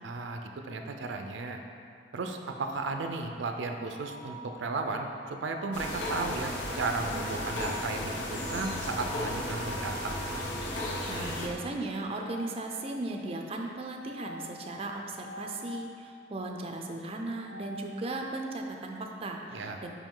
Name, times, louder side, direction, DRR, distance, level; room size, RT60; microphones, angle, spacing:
voice 1, 0.0-1.6 2.1-10.3 19.5-19.8, right 3 dB, 90° right, 4 dB, 0.5 m, -35 dB
sound 1, 3.0-10.7 11.9-13.2 13.9-15.9 17.1-18.5, right 1 dB, 50° left, 0.8 m, -47 dB
sound 2, 5.7-11.5, left 1 dB, 85° left, 0.9 m, -34 dB
voice 2, 11.1-19.9, right 2 dB, 30° right, 2 dB, 0.4 m, -37 dB
5.1 x 5.0 x 3.8 m, 2.4 s
head